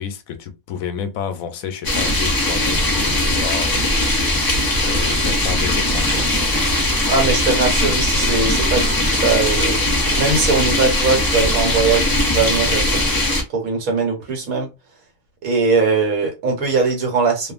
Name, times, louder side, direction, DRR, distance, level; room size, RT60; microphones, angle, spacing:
voice 1, 0.0-4.5 4.8-6.3, left 7 dB, 85° left, 1.0 m, -30 dB
sound 1, 1.8-13.4, left 1 dB, 25° left, 0.5 m, -19 dB
voice 2, 7.1-13.1 13.5-14.7 15.4-17.5, right 4 dB, 85° right, 1.4 m, -20 dB
2.6 x 2.4 x 2.4 m
omnidirectional pair, 1.4 m